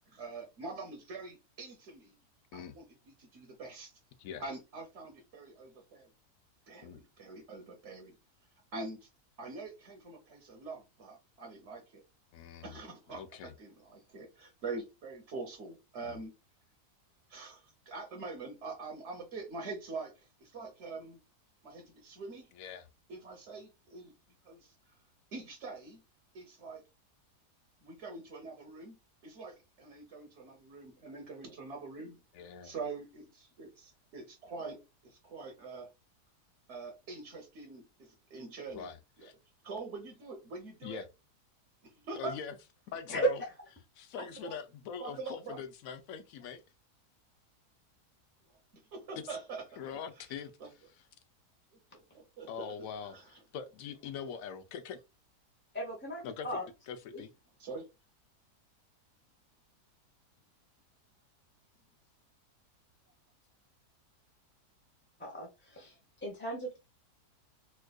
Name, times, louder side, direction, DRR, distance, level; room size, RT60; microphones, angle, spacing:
voice 1, 0.1-2.2 2.5-3.9 4.4-6.1 6.7-8.1 8.7-9.1 9.4-12.0 12.6-16.3 17.3-21.2 21.6-22.5 23.1-24.1 24.4-24.9 25.3-26.0 26.3-26.8 27.8-32.2 32.6-35.9 36.7-38.9 39.2-39.3 39.6-41.0 41.8-42.4 44.2-44.5 45.0-45.6 48.7-50.3 50.6-50.7 51.9-53.4 57.6-57.9, right 3 dB, 55° right, 1.0 m, -44 dB
voice 2, 12.3-12.7 13.1-13.5 16.0-16.2 22.6-22.9 32.3-32.7 38.7-39.3 40.8-41.1 42.1-42.5 42.9-43.4 44.0-46.6 49.2-49.4 49.8-50.5 52.5-55.0 56.2-56.6 56.9-57.3, left 7 dB, 70° left, 0.9 m, -43 dB
voice 3, 55.7-56.7 57.1-57.2 65.2-65.9 66.2-66.8, right 2 dB, 10° left, 0.5 m, -34 dB
4.4 x 2.4 x 2.3 m
omnidirectional pair, 1.7 m